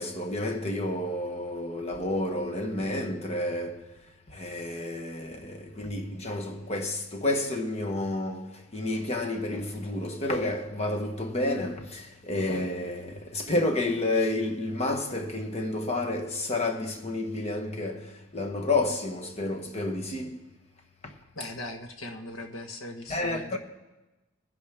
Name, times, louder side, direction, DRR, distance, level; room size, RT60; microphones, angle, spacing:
voice 1, 0.0-3.9 4.3-20.4 21.0-21.1 23.1-23.6, left 2 dB, 30° left, 1.2 m, -30 dB
voice 2, 21.3-23.6, left 1 dB, 85° left, 1.4 m, -39 dB
20.5 x 10.5 x 3.6 m
head